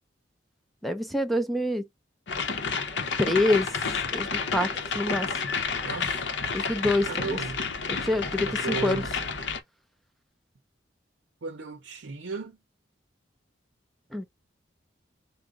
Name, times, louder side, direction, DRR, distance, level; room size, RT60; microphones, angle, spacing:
voice 1, 0.8-1.9 3.2-3.7 4.1-5.3 6.5-7.4 7.9-9.0 14.1-14.3, left 1 dB, ahead, 0.5 m, -26 dB
sound 1, 2.3-9.6, left 5 dB, 70° left, 0.8 m, -30 dB
voice 2, 5.8-6.4 7.0-7.7 8.4-9.1 11.4-12.6, right 4 dB, 80° right, 0.6 m, -35 dB
4.8 x 2.1 x 3.7 m
head